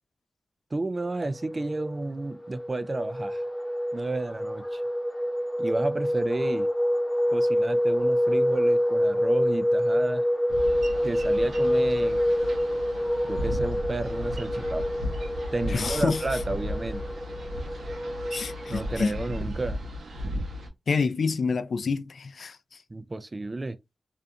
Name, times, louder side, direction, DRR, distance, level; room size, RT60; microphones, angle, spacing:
voice 1, 0.7-3.4 3.9-4.8 5.6-6.7 7.3-10.3 11.0-12.2 13.2-14.8 15.5-17.0 18.7-19.8 22.9-23.8, right 2 dB, 35° right, 0.3 m, -31 dB
sound 1, 1.2-19.0, equal, 20° left, 0.8 m, -27 dB
Boat Water vehicle, 10.5-20.7, equal, 80° right, 0.7 m, -35 dB
voice 2, 15.7-16.2 18.3-19.1 20.9-22.6, left 5 dB, 75° left, 0.3 m, -27 dB
2.5 x 2.3 x 2.6 m
cardioid pair, 65°, 0 cm